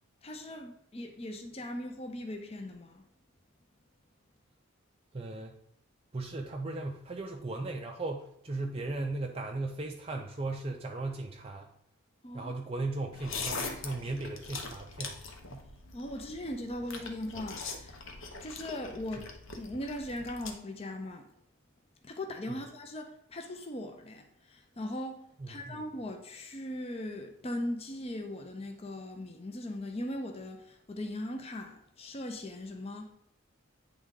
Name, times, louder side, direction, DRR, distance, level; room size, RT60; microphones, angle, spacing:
voice 1, 0.2-3.0 12.2-12.5 15.9-18.0 18.4-21.3 22.0-33.1, left 1 dB, 25° left, 0.5 m, -39 dB
voice 2, 5.1-5.6 6.1-11.7 12.3-15.2 15.5-15.7 19.2-19.3 22.5-22.6 25.4-25.8, right 2 dB, 25° right, 0.4 m, -37 dB
sound 1, 13.1-20.5, left 4 dB, 65° left, 0.9 m, -42 dB
9.2 x 3.6 x 3.7 m
head